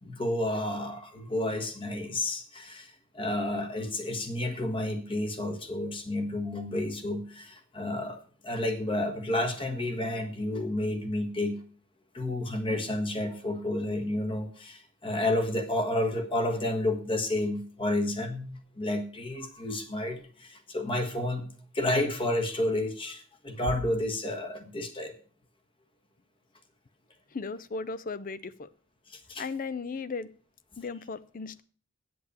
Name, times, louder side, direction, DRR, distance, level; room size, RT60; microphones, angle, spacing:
voice 1, 0.0-11.6 12.1-21.5 21.7-25.1 29.1-29.5, left 1 dB, 25° left, 7 dB, 1.4 m, -31 dB
voice 2, 27.3-28.7 29.4-30.3 30.8-31.6, left 4 dB, 40° left, 16 dB, 0.5 m, -36 dB
8.7 x 7.8 x 6.6 m, 0.44 s
head